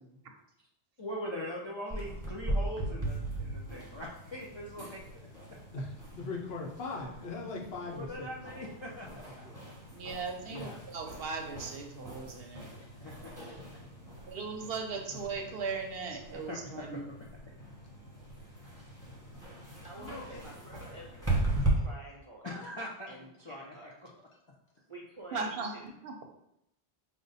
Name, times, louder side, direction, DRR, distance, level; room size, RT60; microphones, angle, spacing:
voice 1, 1.0-5.0 7.8-9.5 13.0-13.3 16.5-17.0 22.4-23.1 23.4-23.7, left 1 dB, 40° left, -3 dB, 0.4 m, -41 dB
sound 1, 1.9-21.7, right 2 dB, 15° right, 1.0 m, -39 dB
voice 2, 5.7-8.3 9.1-9.2 9.4-9.5 10.5-10.8 19.9-20.4, left 3 dB, 65° left, -1 dB, 1.0 m, -40 dB
voice 3, 9.9-12.7 14.3-17.1 25.3-25.7 26.0-26.3, right 4 dB, 65° right, 4 dB, 0.7 m, -38 dB
voice 4, 19.8-22.7 23.1-24.2 24.9-25.9, right 1 dB, 40° right, -2 dB, 0.4 m, -49 dB
5.0 x 2.2 x 4.0 m, 0.78 s
omnidirectional pair, 1.1 m